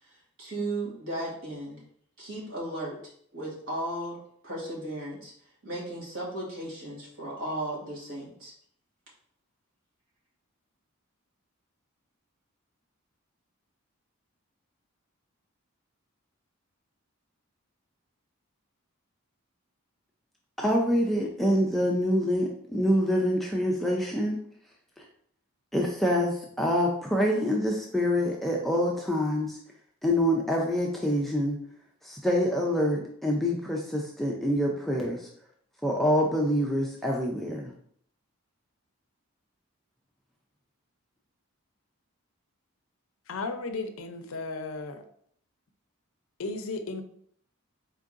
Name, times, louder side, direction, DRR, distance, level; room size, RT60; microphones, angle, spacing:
voice 1, 0.0-1.8 2.2-3.0 3.3-4.2 4.4-5.3 5.6-8.5, right 1 dB, 60° right, -5 dB, 1.7 m, -35 dB
voice 2, 20.6-24.4 25.0-25.1 25.7-29.6 30.0-31.6 32.0-35.3 35.8-37.7, equal, ahead, -1 dB, 0.4 m, -26 dB
voice 3, 43.3-45.0 46.4-47.0, left 3 dB, 70° left, 7 dB, 0.5 m, -34 dB
4.4 x 3.7 x 2.5 m, 0.64 s
head